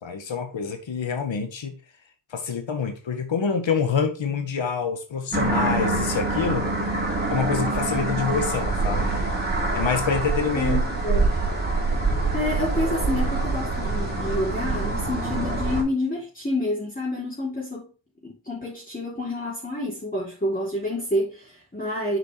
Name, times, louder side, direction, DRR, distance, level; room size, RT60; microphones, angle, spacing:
voice 1, 0.0-1.7 2.3-6.7 7.3-9.1 9.7-10.8 11.1-11.3, left 6 dB, 65° left, 2.0 m, -26 dB
sound 1, 5.3-15.8, right 3 dB, 20° right, 3.5 m, -25 dB
voice 2, 10.5-11.3 12.3-17.9 18.2-22.2, left 1 dB, 15° left, 3.3 m, -28 dB
6.5 x 5.1 x 4.7 m
cardioid pair, 55°, 48 cm